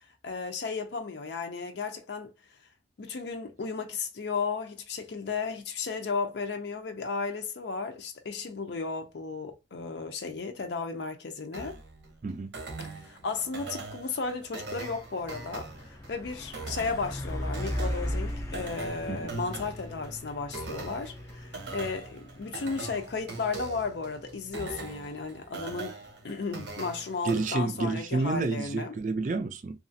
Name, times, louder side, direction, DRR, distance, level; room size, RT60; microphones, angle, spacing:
voice 1, 0.2-2.3 3.0-11.7 13.1-15.7 16.1-26.0 26.2-28.9, left 4 dB, 75° left, 0.5 m, -34 dB
sound 1, 11.5-27.5, right 3 dB, 90° right, 0.9 m, -42 dB
voice 2, 12.2-12.5 19.1-19.2 27.2-29.8, right 3 dB, 45° right, 0.4 m, -29 dB
Truck, 14.3-26.9, left 1 dB, 15° left, 0.4 m, -39 dB
2.9 x 2.4 x 2.6 m
head